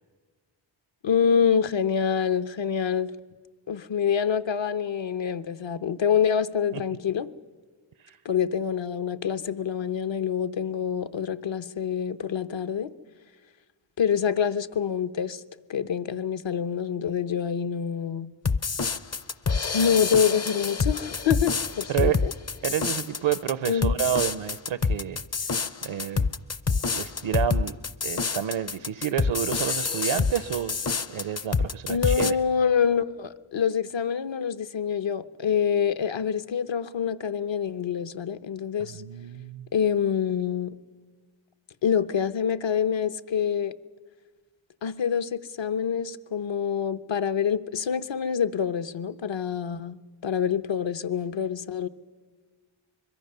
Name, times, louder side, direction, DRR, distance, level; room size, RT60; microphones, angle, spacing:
voice 1, 1.0-3.1 3.7-7.3 8.2-12.9 14.0-15.4 15.7-18.3 19.7-22.3 23.7-24.0 31.9-39.0 39.7-40.7 41.8-43.7 44.8-50.0 50.2-51.9, left 7 dB, 70° left, 0.9 m, -26 dB
sound 1, 18.5-32.3, left 4 dB, 35° left, 0.6 m, -27 dB
voice 2, 22.6-25.2 25.5-26.3 26.9-27.8 28.0-30.8 31.1-32.4 38.9-39.7, right 10 dB, 75° right, 0.7 m, -29 dB
24.5 x 22.0 x 6.7 m
wide cardioid pair, 70°, 48 cm